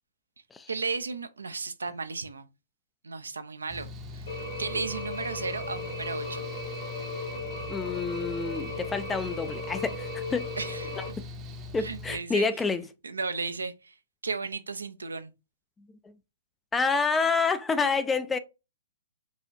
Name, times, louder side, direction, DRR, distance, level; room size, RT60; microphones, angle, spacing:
voice 1, 0.7-2.5 3.0-6.5 10.6-11.0 11.8-12.5 13.0-13.9 14.2-15.3, right 4 dB, 85° right, 0.5 m, -34 dB
Mechanical fan, 3.7-12.2, left 3 dB, 25° right, 0.6 m, -41 dB
sound 1, 4.3-11.1, left 2 dB, 70° left, 2.2 m, -37 dB
voice 2, 7.7-10.5 11.0-11.1 11.7-12.8 16.0-16.1 16.7-18.4, left 4 dB, 10° left, 0.3 m, -28 dB
4.8 x 2.4 x 2.6 m
hypercardioid pair, 125°, 0 cm